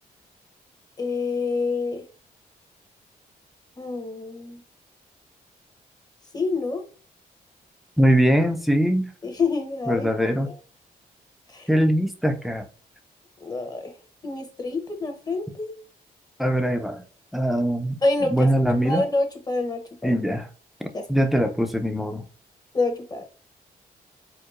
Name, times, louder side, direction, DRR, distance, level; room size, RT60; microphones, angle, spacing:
voice 1, 1.0-2.0 3.8-4.6 6.3-6.8 9.2-10.1 10.5-10.6 11.5-11.7 13.4-13.9 14.2-15.7 18.0-18.5 18.8-20.2 20.9-21.0 22.7-23.2, left 3 dB, 25° left, 1.0 m, -27 dB
voice 2, 8.0-9.1 9.9-10.5 11.7-12.7 16.4-17.0 17.3-18.0 18.3-19.0 20.0-20.4 20.8-22.2, equal, ahead, 0.6 m, -22 dB
4.5 x 2.2 x 2.5 m
cardioid pair, 75°, 16 cm